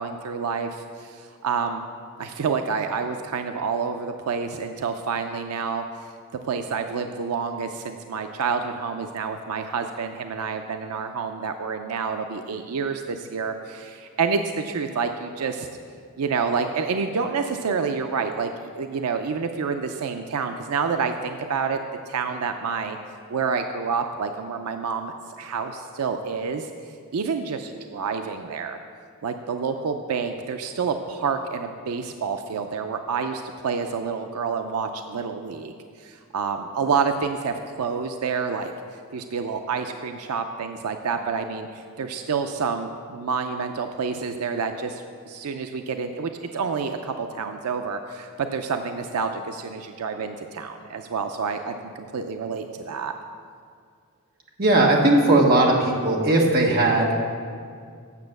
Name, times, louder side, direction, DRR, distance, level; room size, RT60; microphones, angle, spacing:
voice 1, 0.0-1.8 2.2-15.7 16.2-21.8 22.1-23.0 23.3-26.7 27.1-28.8 29.2-53.1, right 5 dB, 90° right, 6 dB, 0.5 m, -28 dB
voice 2, 54.6-57.1, right 2 dB, 45° right, 0 dB, 1.3 m, -18 dB
8.3 x 6.9 x 6.5 m, 2.2 s
head